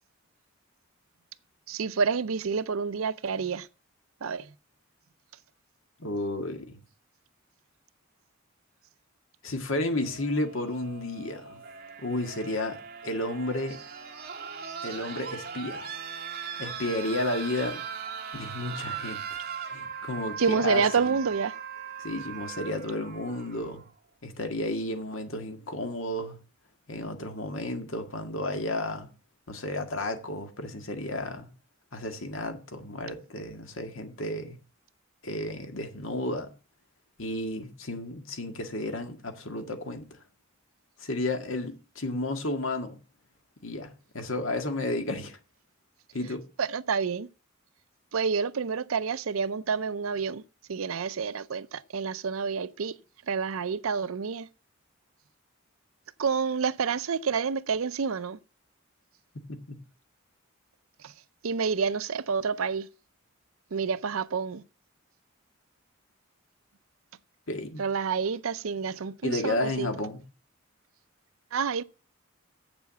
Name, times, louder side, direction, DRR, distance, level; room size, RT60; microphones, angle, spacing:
voice 1, 1.7-3.7 4.2-4.5 20.4-21.5 46.6-47.3 48.1-50.4 50.7-53.0 53.3-54.5 56.2-58.4 61.0-61.1 61.4-62.9 63.7-64.6 67.8-69.9 71.5-71.8, right 5 dB, 85° right, 0.6 m, -28 dB
voice 2, 6.0-6.8 9.4-11.6 12.0-13.8 14.8-15.9 16.6-17.8 18.3-19.4 19.7-21.2 22.0-23.8 24.2-26.4 26.9-29.1 29.5-31.5 31.9-34.6 35.2-36.5 37.2-40.1 41.0-43.0 43.6-45.4 46.1-46.5 59.4-59.8 67.5-67.8 69.2-70.2, left 2 dB, 70° left, 1.8 m, -32 dB
sound 1, 9.9-23.9 25.1-25.2, right 7 dB, 45° right, 1.9 m, -40 dB
8.1 x 7.0 x 7.0 m
head